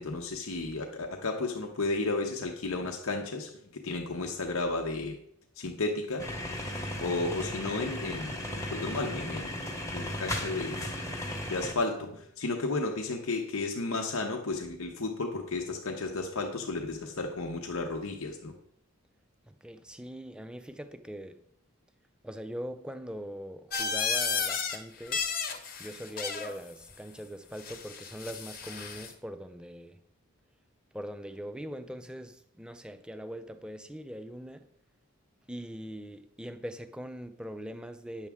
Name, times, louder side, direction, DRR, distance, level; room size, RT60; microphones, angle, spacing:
voice 1, 0.0-5.2 5.6-6.3 7.0-9.6 9.9-10.9 11.5-18.5, left 3 dB, 75° left, 0.9 m, -33 dB
sound 1, 6.2-11.7, left 1 dB, 15° left, 0.9 m, -36 dB
voice 2, 19.4-21.4 22.2-25.3 25.8-30.0 30.9-34.7 35.5-38.3, equal, 5° right, 0.4 m, -41 dB
sound 2, 23.7-24.8 25.0-26.5 27.6-29.1, left 5 dB, 40° left, 1.0 m, -33 dB
9.4 x 7.1 x 3.6 m
head